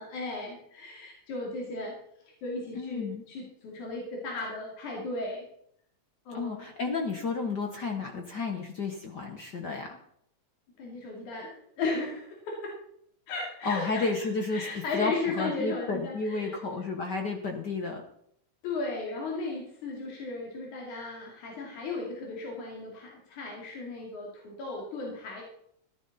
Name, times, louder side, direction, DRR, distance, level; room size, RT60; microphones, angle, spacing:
voice 1, 0.0-1.9 2.2-5.4 6.3-6.7 10.8-11.5 11.8-12.7 13.3-16.6 18.6-25.4, left 3 dB, 85° left, -2 dB, 3.9 m, -35 dB
voice 2, 2.7-3.2 6.3-10.0 13.6-18.0, left 3 dB, 55° left, 3 dB, 1.3 m, -32 dB
14.0 x 11.5 x 4.1 m, 0.70 s
omnidirectional pair, 3.3 m